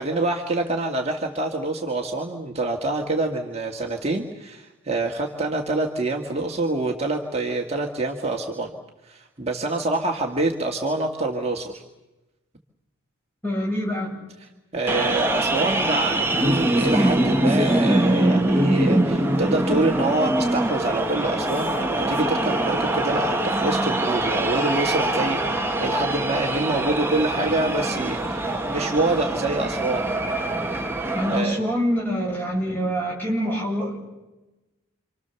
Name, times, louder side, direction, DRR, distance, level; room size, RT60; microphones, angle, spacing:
voice 1, 0.0-8.8 9.0-11.8 14.4-30.1 31.3-31.6, right 2 dB, 30° right, 1 dB, 1.8 m, -26 dB
voice 2, 13.4-14.1 31.1-34.1, equal, 10° left, -3 dB, 7.9 m, -25 dB
sound 1, 14.9-31.4, right 1 dB, 10° right, 1.3 m, -23 dB
28.0 x 25.0 x 7.0 m, 1.0 s
head